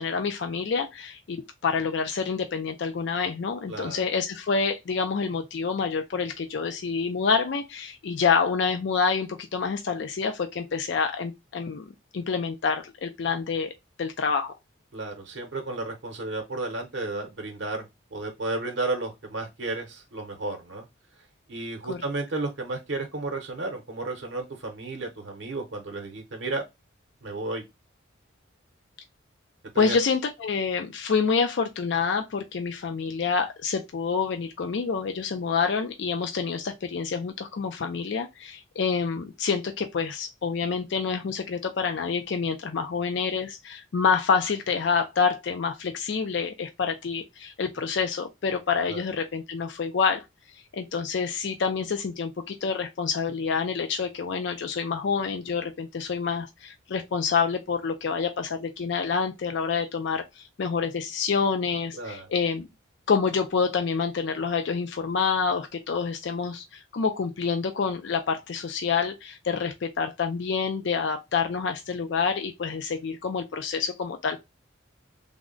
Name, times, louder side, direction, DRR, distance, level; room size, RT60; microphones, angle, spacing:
voice 1, 0.0-11.9 12.1-13.7 14.0-14.5 21.9-22.0 29.8-50.2 50.7-62.7 63.1-74.4, left 5 dB, 60° left, 0.4 m, -27 dB
voice 2, 3.7-4.1 14.9-17.9 18.1-20.9 21.5-26.6 27.2-27.6 29.7-30.0 48.9-49.0 61.9-62.3, right 2 dB, 60° right, 0.7 m, -33 dB
3.5 x 2.1 x 3.7 m
head